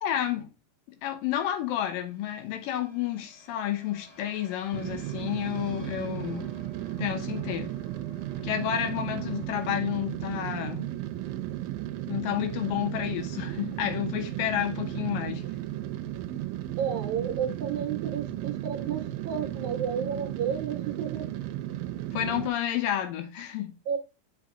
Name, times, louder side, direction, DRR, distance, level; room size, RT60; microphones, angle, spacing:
voice 1, 0.0-0.5 1.0-6.5 7.0-7.7 8.4-10.9 12.1-15.4 22.1-23.7, left 11 dB, 80° left, 2.6 m, -30 dB
sound 1, 1.2-11.4, equal, 10° left, 2.3 m, -54 dB
sound 2, 4.7-22.5, right 14 dB, 85° right, 2.3 m, -35 dB
voice 2, 16.8-21.3 23.9-24.0, right 8 dB, 65° right, 2.3 m, -31 dB
6.0 x 5.6 x 3.7 m
omnidirectional pair, 4.0 m